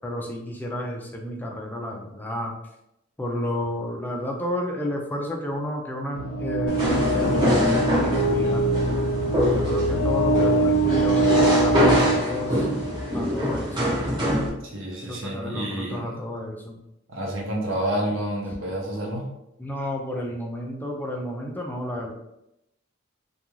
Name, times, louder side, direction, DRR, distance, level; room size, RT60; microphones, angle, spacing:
voice 1, 0.0-2.5 3.2-8.7 9.5-12.7 13.1-13.8 15.0-16.8 19.6-22.1, left 1 dB, 10° left, 0 dB, 0.3 m, -31 dB
sound 1, 6.1-13.1, right 2 dB, 75° left, 0.5 m, -23 dB
sound 2, 6.7-14.5, equal, 20° right, 0.8 m, -25 dB
voice 2, 14.6-16.3 17.1-19.3, right 1 dB, 70° right, -2 dB, 0.8 m, -29 dB
2.4 x 2.3 x 3.0 m, 0.85 s
head